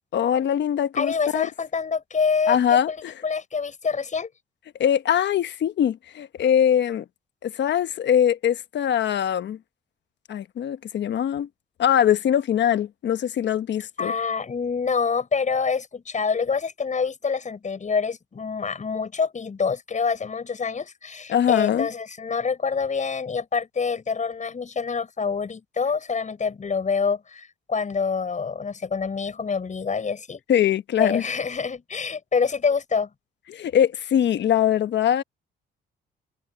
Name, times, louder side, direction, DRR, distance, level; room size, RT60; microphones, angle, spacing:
voice 1, 0.1-1.5 2.5-3.1 4.8-7.0 7.4-9.6 10.3-11.5 11.8-14.1 21.3-21.9 30.5-31.2 33.5-35.2, left 9 dB, 65° left, 1.1 m, -22 dB
voice 2, 1.0-4.3 14.0-30.4 31.0-33.1, left 5 dB, 40° left, 7.3 m, -26 dB
cardioid pair, 90°, 20 cm